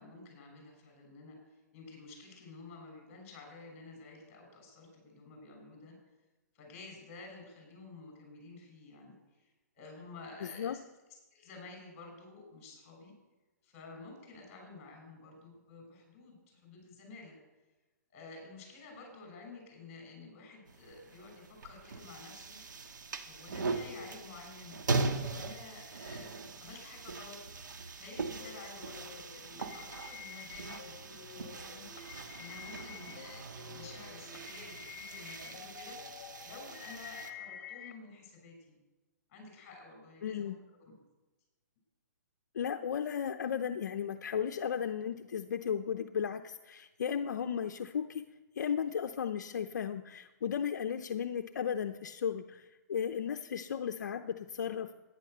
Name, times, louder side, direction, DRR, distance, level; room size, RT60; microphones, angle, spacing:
voice 1, 0.0-6.0 6.5-9.5 9.7-10.8 11.3-13.1 13.6-17.4 18.1-22.6 23.2-27.4 28.0-31.9 32.4-36.0 36.4-38.8 39.3-40.5 40.8-40.9, left 3 dB, 30° left, 2 dB, 6.5 m, -51 dB
voice 2, 10.4-10.8 40.2-40.6 42.5-48.3 48.6-54.9, left 8 dB, 70° left, 7 dB, 0.7 m, -35 dB
sound 1, 20.7-37.3, right 3 dB, 85° right, 1.7 m, -40 dB
sound 2, 28.4-37.9, left 8 dB, 45° left, 1.6 m, -50 dB
14.5 x 10.0 x 6.8 m, 1.2 s
hypercardioid pair, 155°, 10 cm